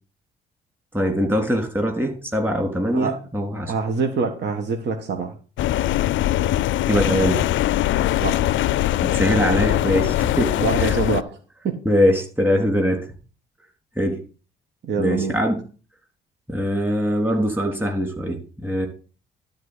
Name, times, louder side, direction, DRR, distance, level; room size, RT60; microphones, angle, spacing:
voice 1, 0.9-3.7 6.9-7.5 9.0-10.5 10.8-10.9 11.9-13.0 14.0-14.2 15.0-15.5 16.5-18.9, equal, 10° right, 2 dB, 3.5 m, -22 dB
voice 2, 3.7-5.3 8.1-8.8 10.6-11.3 11.6-11.8 14.8-15.4, right 5 dB, 60° right, 4 dB, 1.7 m, -25 dB
sound 1, 5.6-11.2, left 14 dB, 75° left, 0.5 m, -21 dB
12.0 x 4.2 x 8.2 m, 0.36 s
cardioid pair, 90°, 20 cm